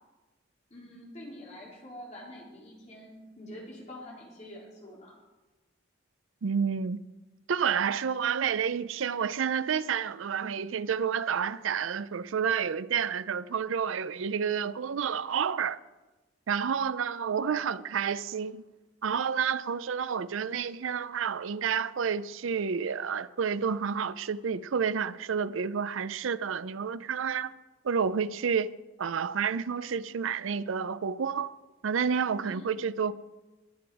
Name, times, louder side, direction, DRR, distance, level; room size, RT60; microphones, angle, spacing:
voice 1, 0.7-5.1 17.3-17.9 32.4-32.7, left 1 dB, 35° left, 3.8 m, -46 dB
voice 2, 6.4-7.0 7.5-15.8 16.5-18.6 19.0-27.5 27.8-31.5 31.8-33.1, right 6 dB, 85° right, 0.5 m, -30 dB
21.5 x 7.8 x 4.8 m
head